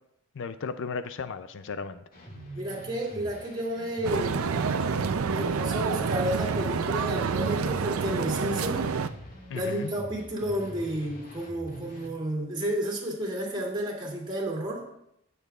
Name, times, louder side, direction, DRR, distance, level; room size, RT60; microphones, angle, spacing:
voice 1, 0.3-2.0 9.5-9.9, left 5 dB, 65° left, 11 dB, 0.5 m, -35 dB
sound 1, 2.1-12.1, equal, 45° left, 1.9 m, -45 dB
voice 2, 2.5-4.5 5.3-8.9 9.5-14.8, right 1 dB, 25° right, -2 dB, 2.7 m, -31 dB
sound 2, 4.0-9.1, right 5 dB, 90° right, 0.5 m, -28 dB
17.5 x 6.9 x 2.4 m, 0.77 s
head